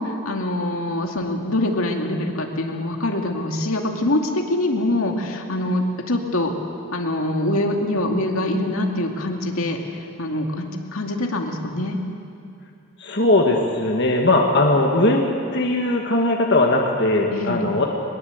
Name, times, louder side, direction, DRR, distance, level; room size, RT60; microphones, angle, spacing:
voice 1, 0.0-6.5 6.9-9.8 10.2-12.0 17.3-17.7, left 1 dB, 75° left, 2 dB, 2.4 m, -24 dB
voice 2, 13.0-15.2 15.5-17.9, left 2 dB, 50° left, 0 dB, 1.8 m, -19 dB
22.0 x 21.5 x 8.1 m, 2.4 s
head